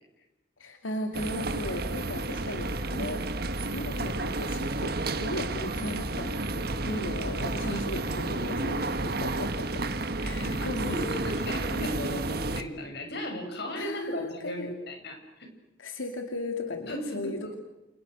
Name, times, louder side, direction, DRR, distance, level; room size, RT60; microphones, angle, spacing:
voice 1, 0.6-3.2 3.7-9.9 10.2-11.0 13.8-14.7 15.8-17.6, left 2 dB, 90° left, 4 dB, 2.8 m, -37 dB
sound 1, 1.1-12.6, right 2 dB, 50° right, 1.6 m, -31 dB
voice 2, 7.6-8.8 10.2-15.5 16.9-17.6, equal, 55° left, 4 dB, 7.3 m, -37 dB
30.0 x 29.0 x 6.5 m, 0.98 s
head